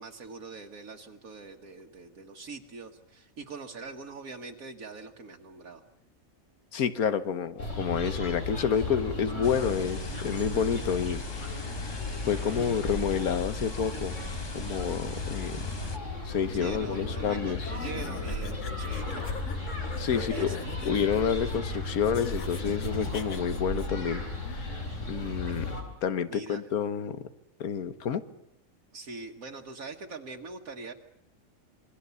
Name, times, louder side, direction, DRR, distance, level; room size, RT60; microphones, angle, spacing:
voice 1, 0.0-5.8 16.5-19.3 20.1-20.8 26.3-26.6 28.9-30.9, right 4 dB, 75° right, 2 dB, 1.8 m, -43 dB
voice 2, 6.7-14.1 14.5-15.6 16.2-17.7 20.0-25.7 26.0-27.3 27.6-28.2, left 7 dB, 90° left, 13 dB, 1.6 m, -29 dB
sound 1, 7.6-25.8, left 2 dB, 55° left, 4.3 m, -35 dB
sound 2, 9.4-16.0, left 3 dB, 20° left, 0.8 m, -40 dB
sound 3, 17.6-23.9, left 6 dB, 70° left, 1.8 m, -43 dB
28.0 x 22.0 x 7.0 m, 0.79 s
omnidirectional pair, 1.5 m